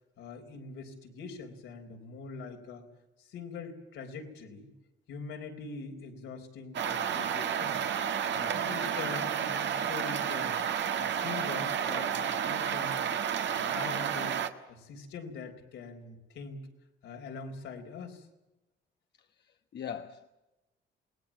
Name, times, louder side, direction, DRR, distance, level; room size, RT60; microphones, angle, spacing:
voice 1, 0.2-2.9 3.2-4.7 5.1-7.8 8.3-10.6 10.9-13.1 13.5-14.4 14.7-16.7 17.0-18.3, left 4 dB, 85° left, 4.2 m, -43 dB
sound 1, 6.7-14.5, right 8 dB, 65° right, 1.6 m, -31 dB
voice 2, 19.2-20.3, left 8 dB, 60° left, 1.2 m, -42 dB
28.0 x 19.0 x 7.3 m
cardioid pair, 90°, 20 cm